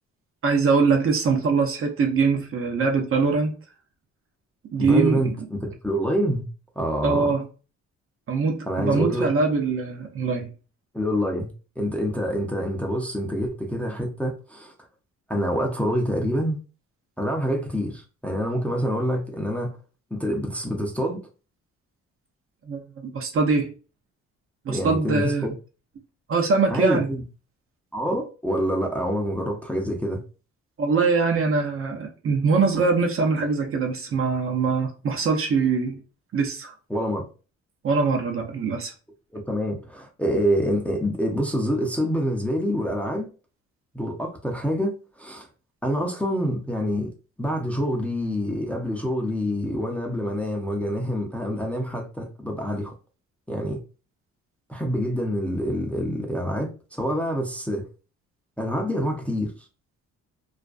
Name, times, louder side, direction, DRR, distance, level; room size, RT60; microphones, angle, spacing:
voice 1, 0.4-3.6 4.7-5.2 7.0-7.5 8.3-10.5 22.7-23.7 24.6-25.5 26.3-27.1 30.8-36.0 36.3-36.7 37.8-38.9, right 4 dB, 45° right, 0.6 m, -23 dB
voice 2, 4.8-6.5 6.8-7.4 8.7-9.3 10.9-11.5 11.8-14.7 15.3-16.6 17.2-19.8 20.1-21.2 24.7-25.5 26.7-27.2 27.9-30.2 36.9-37.3 39.3-43.3 43.9-45.5 45.8-47.1 47.4-52.9 53.5-53.8 54.7-57.9 58.6-59.5, equal, 5° left, 0.5 m, -26 dB
2.5 x 2.2 x 2.4 m
cardioid pair, 90°, 30 cm